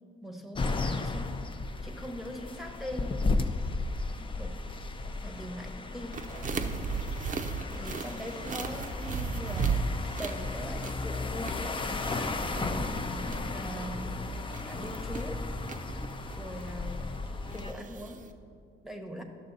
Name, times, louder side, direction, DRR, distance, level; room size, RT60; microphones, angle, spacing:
voice 1, 0.2-1.5 1.8-3.2 4.1-4.5 5.2-6.2 7.7-9.8 10.2-15.4 16.4-17.1 17.5-18.2 18.8-19.2, equal, ahead, 2 dB, 0.9 m, -41 dB
sound 1, 0.5-17.7, left 3 dB, 25° left, 0.5 m, -35 dB
sound 2, 6.1-18.3, right 5 dB, 40° right, 0.6 m, -36 dB
11.0 x 6.5 x 4.0 m, 2.3 s
cardioid pair, 90°, 20 cm